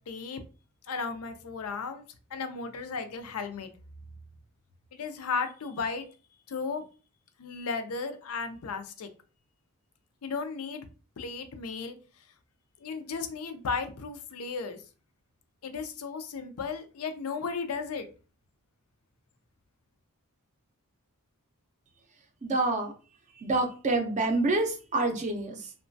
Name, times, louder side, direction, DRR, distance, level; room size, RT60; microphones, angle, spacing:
voice 1, 0.1-0.4 0.9-2.0 2.3-3.7 4.9-6.1 6.5-6.8 7.4-9.1 10.2-10.9 11.2-12.0 12.8-14.8 15.6-18.1, left 5 dB, 70° left, 8 dB, 0.5 m, -35 dB
voice 2, 22.4-22.9 23.4-25.7, right 2 dB, 35° right, 4 dB, 0.5 m, -27 dB
2.9 x 2.2 x 2.6 m, 0.35 s
head